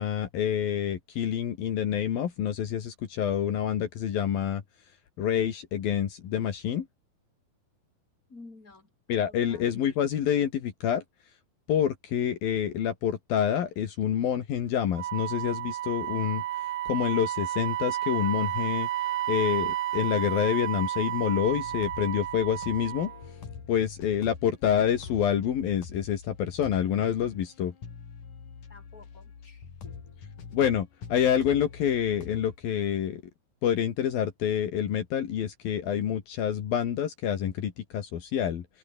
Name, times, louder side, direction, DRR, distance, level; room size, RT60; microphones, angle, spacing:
voice 1, 0.0-4.6 5.2-6.9 9.1-11.0 11.7-16.4 16.9-18.9 19.3-23.1 23.7-27.7 30.5-33.2 33.6-38.7, left 9 dB, 70° left, 3.9 m, -27 dB
voice 2, 8.3-8.9 9.2-9.6 28.7-29.9, left 3 dB, 20° left, 5.7 m, -51 dB
Wind instrument woodwind instrument, 14.9-23.2, right 14 dB, 75° right, 1.6 m, -32 dB
sound 1, 21.4-32.6, left 6 dB, 55° left, 5.0 m, -44 dB
omnidirectional pair, 4.4 m